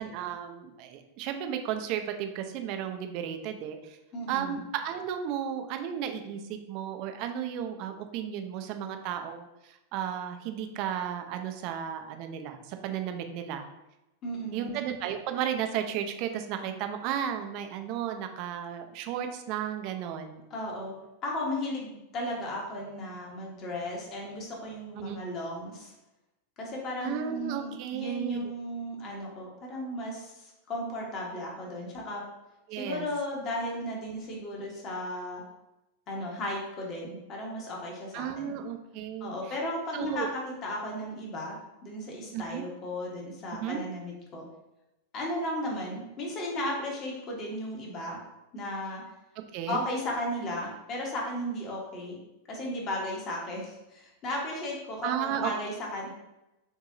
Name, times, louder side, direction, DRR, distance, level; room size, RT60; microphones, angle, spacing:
voice 1, 0.0-4.0 4.3-13.7 14.5-20.4 25.0-25.2 27.0-28.4 32.7-33.1 38.1-39.3 39.9-40.3 42.3-42.6 43.5-43.8 49.5-49.8 55.0-55.5, right 9 dB, 45° right, 6 dB, 0.5 m, -34 dB
voice 2, 4.1-4.6 14.2-14.7 20.5-20.9 21.2-25.9 26.6-32.2 32.8-35.4 36.1-38.5 39.2-44.5 45.1-48.2 48.5-49.0 49.7-52.2 52.5-56.1, left 1 dB, 35° left, -2 dB, 1.3 m, -35 dB
6.0 x 2.7 x 2.6 m, 0.95 s
figure-of-eight pair, 90°, 0 cm